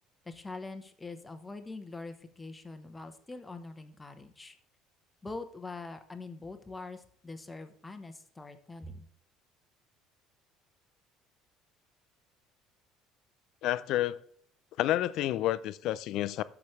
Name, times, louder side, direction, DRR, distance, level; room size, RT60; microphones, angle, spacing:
voice 1, 0.2-4.5 5.2-9.1, left 3 dB, 10° left, 1.0 m, -43 dB
voice 2, 13.6-14.2 14.8-16.4, left 14 dB, 60° left, 0.5 m, -29 dB
13.5 x 6.0 x 3.2 m
cardioid pair, 145°, 0 cm